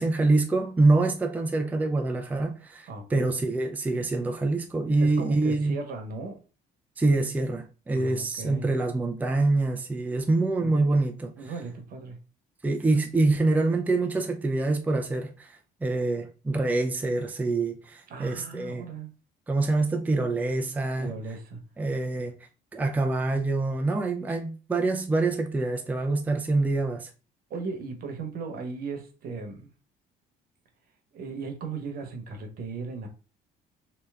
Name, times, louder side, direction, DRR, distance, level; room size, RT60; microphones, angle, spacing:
voice 1, 0.0-5.8 7.0-11.3 12.6-18.9 19.5-21.1 21.8-22.4 22.7-27.1, right 2 dB, 10° right, 0.4 m, -25 dB
voice 2, 2.9-3.3 5.0-6.4 7.9-8.7 10.6-10.8 11.4-12.2 18.1-19.1 21.0-21.6 27.5-29.7 31.1-33.1, right 4 dB, 60° right, 1.0 m, -37 dB
3.3 x 2.8 x 3.5 m
cardioid pair, 110°, 17 cm